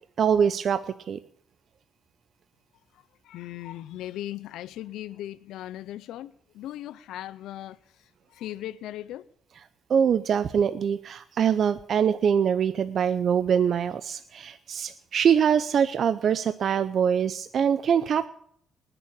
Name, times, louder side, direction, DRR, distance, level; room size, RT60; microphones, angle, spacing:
voice 1, 0.2-0.8 1.1-1.2 9.9-18.3, right 7 dB, 60° right, 0.6 m, -23 dB
voice 2, 2.9-9.3, left 13 dB, 85° left, 0.6 m, -38 dB
19.5 x 7.0 x 8.7 m
cardioid pair, 75°, 0 cm